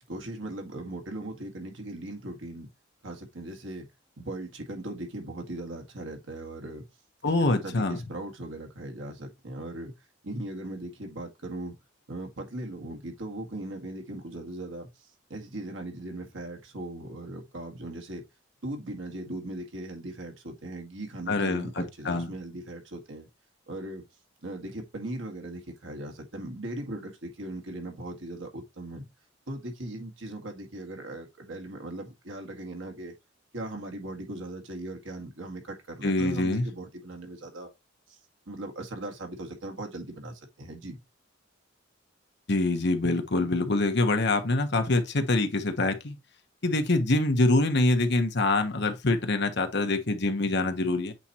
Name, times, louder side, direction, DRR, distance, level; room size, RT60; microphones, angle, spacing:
voice 1, 0.1-2.7 3.0-3.9 4.2-6.9 7.4-9.9 10.2-11.8 12.1-14.9 15.3-18.2 18.6-23.3 23.7-24.0 24.4-29.1 29.5-33.1 33.5-37.7 38.1-38.2 38.5-41.0, right 1 dB, 80° right, 1.9 m, -39 dB
voice 2, 7.2-8.0 21.3-22.3 36.0-36.7 42.5-46.2 46.6-51.1, left 2 dB, 60° left, 1.2 m, -25 dB
8.2 x 4.2 x 3.0 m
head